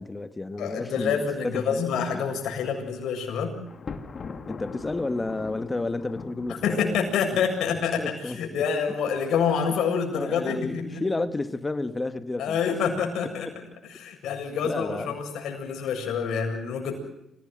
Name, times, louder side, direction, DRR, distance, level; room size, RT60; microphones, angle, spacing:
voice 1, 0.0-1.8 2.1-2.3 4.5-7.0 8.0-8.4 10.1-12.6 13.4-13.5 14.6-15.2, left 2 dB, 20° left, 1.7 m, -31 dB
voice 2, 0.6-3.5 6.6-11.0 12.4-13.5 13.8-16.9, left 6 dB, 75° left, 7.5 m, -27 dB
Thunder, 3.7-7.8, left 5 dB, 45° left, 2.8 m, -41 dB
27.0 x 18.0 x 7.6 m
cardioid pair, 90°, 0 cm